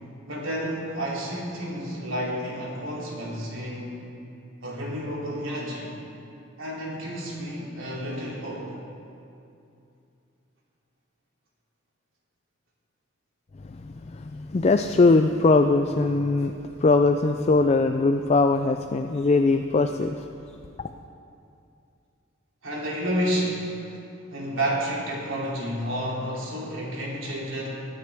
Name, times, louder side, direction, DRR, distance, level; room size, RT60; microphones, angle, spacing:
voice 1, 0.3-4.0 4.6-5.9 6.6-8.7 22.6-23.7 24.3-27.9, equal, 85° right, -4 dB, 3.0 m, -30 dB
voice 2, 13.6-20.3, left 3 dB, 35° left, 6 dB, 0.4 m, -21 dB
22.5 x 9.6 x 3.5 m, 2.6 s
head